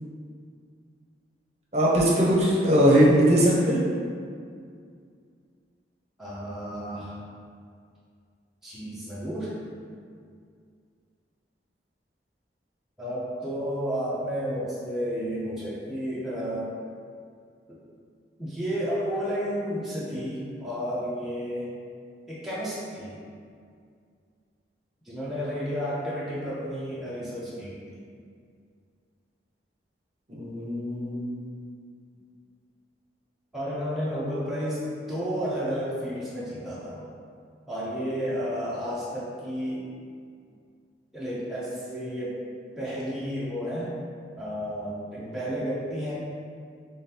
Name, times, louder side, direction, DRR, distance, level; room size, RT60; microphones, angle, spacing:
voice 1, 1.7-3.8 30.3-31.4 45.2-45.3, equal, 35° right, -5 dB, 0.7 m, -21 dB
voice 2, 6.2-7.2 8.6-9.5 13.0-16.7 17.7-17.8 18.4-21.7 22.3-23.2 25.0-28.0 33.5-37.1 37.7-39.8 41.1-42.4 42.7-44.0 44.3-46.1, equal, ahead, -10 dB, 0.5 m, -32 dB
3.7 x 3.2 x 2.8 m, 2.2 s
head